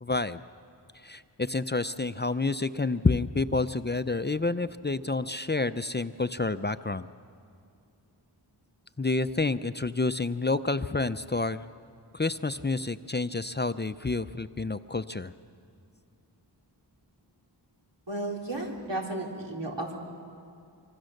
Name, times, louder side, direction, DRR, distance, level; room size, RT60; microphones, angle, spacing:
voice 1, 0.0-0.4 1.0-7.1 9.0-11.6 12.1-15.3, left 3 dB, 25° left, 12 dB, 0.5 m, -29 dB
voice 2, 18.1-20.0, right 2 dB, 80° right, -1 dB, 3.6 m, -33 dB
25.0 x 24.5 x 6.6 m, 2.6 s
wide cardioid pair, 50°, 42 cm